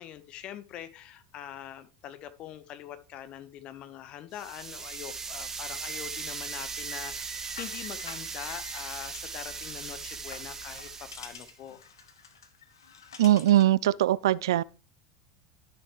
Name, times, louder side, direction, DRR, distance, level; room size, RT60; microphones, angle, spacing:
voice 1, 0.0-11.8, left 11 dB, 45° left, 1.0 m, -43 dB
sound 1, 4.3-11.5, right 5 dB, 20° right, 1.2 m, -38 dB
sound 2, 7.3-13.8, left 6 dB, 85° left, 1.2 m, -49 dB
voice 2, 13.2-14.6, right 13 dB, 75° right, 0.3 m, -21 dB
12.0 x 6.6 x 3.1 m
hypercardioid pair, 90°, 2 cm